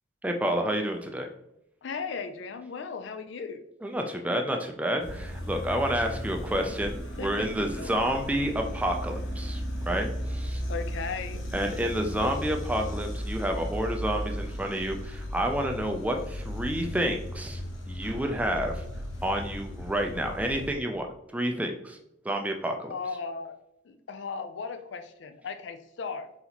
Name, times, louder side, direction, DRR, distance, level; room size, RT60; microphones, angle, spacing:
voice 1, 0.2-1.3 3.8-10.6 11.5-17.6 17.9-18.8 19.2-21.1 21.3-22.0 22.2-22.9, right 1 dB, 5° right, 3 dB, 0.4 m, -29 dB
voice 2, 1.8-3.6 7.2-8.0 10.7-11.4 22.9-23.5 23.8-26.3, left 5 dB, 65° left, 9 dB, 0.4 m, -36 dB
sound 1, 5.0-20.7, equal, 80° left, 1.0 m, -35 dB
4.0 x 4.0 x 2.9 m, 0.80 s
head